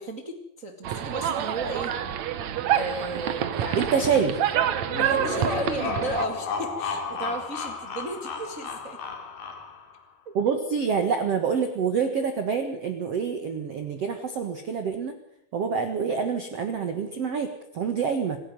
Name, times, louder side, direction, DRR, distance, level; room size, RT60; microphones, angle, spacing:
voice 1, 0.0-1.9 2.7-4.1 5.0-9.0 10.4-10.6, right 1 dB, 35° right, 4 dB, 1.2 m, -34 dB
partido en el clot de la mel, 0.8-6.2, right 9 dB, 70° right, 1.7 m, -27 dB
voice 2, 3.7-4.3 10.3-15.1 15.5-17.5 17.7-18.4, right 6 dB, 55° right, 7 dB, 1.9 m, -26 dB
sound 1, 4.8-10.0, left 5 dB, 55° left, 4.2 m, -33 dB
26.0 x 10.5 x 9.5 m, 0.74 s
omnidirectional pair, 4.9 m